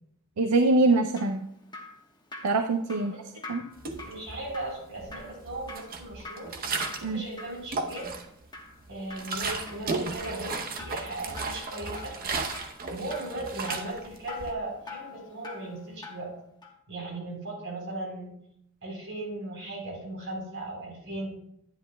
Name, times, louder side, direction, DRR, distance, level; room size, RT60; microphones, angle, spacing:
voice 1, 0.4-1.5 2.4-3.1 3.5-3.6 7.0-7.3, right 2 dB, 75° right, 7 dB, 0.5 m, -23 dB
Drip, 0.9-16.3 16.6-16.8, left 3 dB, 20° left, 1.1 m, -45 dB
voice 2, 3.0-3.4 4.0-6.5 7.0-8.1 8.9-12.2 12.9-16.3 16.9-18.3 18.8-21.4, right 2 dB, 60° right, -2 dB, 3.8 m, -37 dB
sound 1, 3.8-4.6 5.0-7.2 7.5-8.4 8.8-14.5, right 4 dB, 40° right, 0.8 m, -35 dB
10.5 x 9.8 x 2.2 m, 0.74 s
head